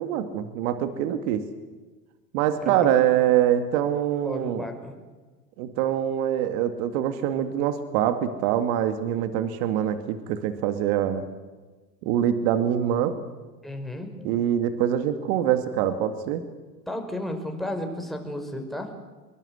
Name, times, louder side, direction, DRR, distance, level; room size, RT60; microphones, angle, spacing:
voice 1, 0.0-1.4 2.3-4.6 5.6-11.3 12.0-13.1 14.2-16.4, right 10 dB, 55° right, 9 dB, 2.4 m, -24 dB
voice 2, 4.2-4.9 13.6-14.3 16.9-18.9, left 1 dB, ahead, 4 dB, 5.5 m, -33 dB
25.5 x 23.0 x 8.0 m, 1.3 s
hypercardioid pair, 85°, 49 cm